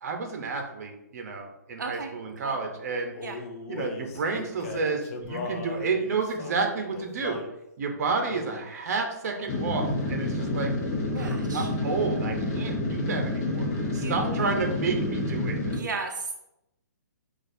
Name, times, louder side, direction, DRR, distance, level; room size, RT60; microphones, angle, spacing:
voice 1, 0.0-3.2 3.7-7.4 7.8-10.7 11.1-13.7 13.9-15.6, right 4 dB, 55° right, 4 dB, 0.8 m, -30 dB
voice 2, 1.8-2.6 3.2-3.4 11.2-11.7 13.9-14.4 15.7-16.3, right 4 dB, 85° right, 3 dB, 0.4 m, -36 dB
Male singing, 3.1-7.5 8.3-8.7 9.3-9.6 9.9-10.8, left 4 dB, 50° left, 0.5 m, -39 dB
sound 1, 9.5-15.8, left 1 dB, 25° left, 0.9 m, -28 dB
6.0 x 2.5 x 2.6 m, 0.86 s
hypercardioid pair, 145°, 10 cm